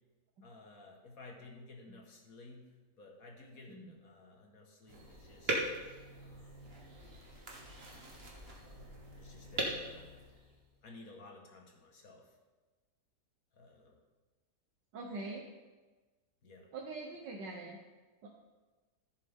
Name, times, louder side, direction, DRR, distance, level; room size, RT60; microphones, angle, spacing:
voice 1, 0.4-5.6 6.2-6.7 8.6-10.2 10.8-12.4 13.5-14.0 16.4-16.7, left 2 dB, 55° left, 1 dB, 1.9 m, -55 dB
sound 1, 4.9-10.7, right 1 dB, 35° right, 1.8 m, -41 dB
voice 2, 14.9-15.4 16.7-17.8 18.2-18.3, right 3 dB, 85° right, -1 dB, 1.7 m, -43 dB
15.0 x 7.6 x 3.6 m, 1.3 s
omnidirectional pair, 1.8 m